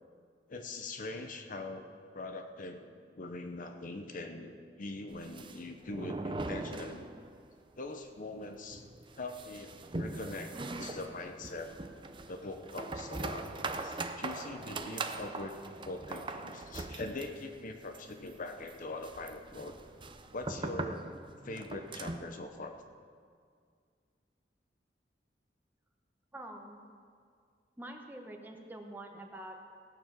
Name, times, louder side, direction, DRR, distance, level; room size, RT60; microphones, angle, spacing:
voice 1, 0.5-2.9 3.2-7.1 7.8-8.8 9.2-11.8 12.3-19.8 20.3-21.2 21.4-22.8, left 2 dB, 50° left, 5 dB, 0.8 m, -42 dB
sound 1, 5.1-7.5 7.7-7.8 8.2-8.3 8.7-22.3, right 2 dB, 30° right, 0.6 m, -41 dB
voice 2, 26.3-26.8 27.8-29.6, right 1 dB, 10° right, 2 dB, 1.1 m, -46 dB
17.0 x 7.1 x 6.0 m, 2.2 s
head